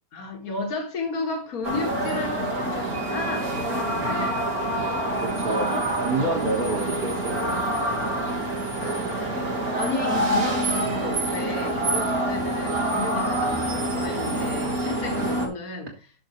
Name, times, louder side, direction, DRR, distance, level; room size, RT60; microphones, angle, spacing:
voice 1, 0.1-4.5 5.5-5.9 8.8-15.9, left 3 dB, 75° left, 2.2 m, -33 dB
sound 1, 1.6-15.5, right 1 dB, 85° right, 2.8 m, -26 dB
voice 2, 4.8-7.7 15.1-15.5, right 2 dB, 35° right, 1.8 m, -29 dB
12.5 x 6.3 x 3.2 m
omnidirectional pair, 1.5 m